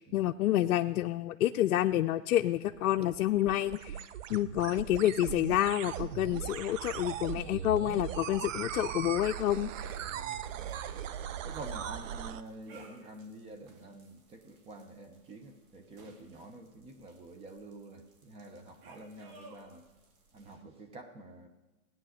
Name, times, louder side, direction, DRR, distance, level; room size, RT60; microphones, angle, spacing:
voice 1, 0.0-4.0 4.3-9.7, left 13 dB, 85° left, 7 dB, 0.6 m, -28 dB
sound 1, 2.5-12.4, right 9 dB, 60° right, 0.8 m, -39 dB
sound 2, 9.1-20.5, right 3 dB, 40° right, 2.1 m, -58 dB
voice 2, 10.0-19.9 20.3-21.5, right 2 dB, 15° right, 6 dB, 0.8 m, -48 dB
17.0 x 9.2 x 6.5 m, 1.1 s
hypercardioid pair, 150°, 43 cm